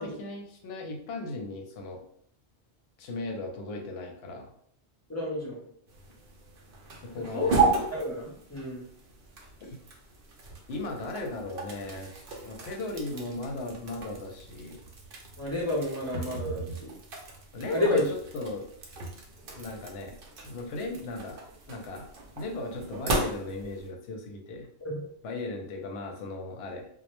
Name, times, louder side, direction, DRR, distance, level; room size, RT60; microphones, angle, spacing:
voice 1, 0.0-2.0 3.0-4.5 7.0-7.5 9.6-9.8 10.7-14.8 17.5-18.7 19.5-20.2 20.4-21.4 21.7-22.1 22.4-24.7 25.2-26.9, left 2 dB, 70° left, 3 dB, 0.8 m, -37 dB
voice 2, 5.1-5.6 7.3-7.5 7.9-8.9 15.4-17.0 17.7-18.0 24.8-24.9, left 2 dB, 25° left, -4 dB, 0.4 m, -30 dB
sound 1, 5.9-23.9, right 3 dB, 60° right, 0.7 m, -35 dB
2.1 x 2.0 x 2.9 m, 0.64 s
omnidirectional pair, 1.2 m